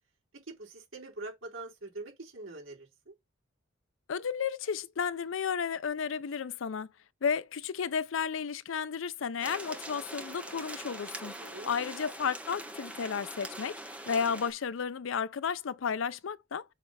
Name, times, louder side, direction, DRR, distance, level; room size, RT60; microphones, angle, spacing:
voice 1, 0.5-3.1 11.2-11.7, right 2 dB, 85° right, 4.0 m, -44 dB
voice 2, 4.1-6.9 7.2-11.4 11.6-16.6, left 6 dB, 70° left, 0.5 m, -33 dB
sound 1, 9.4-14.5, right 1 dB, 5° right, 1.1 m, -43 dB
6.6 x 3.3 x 5.5 m
head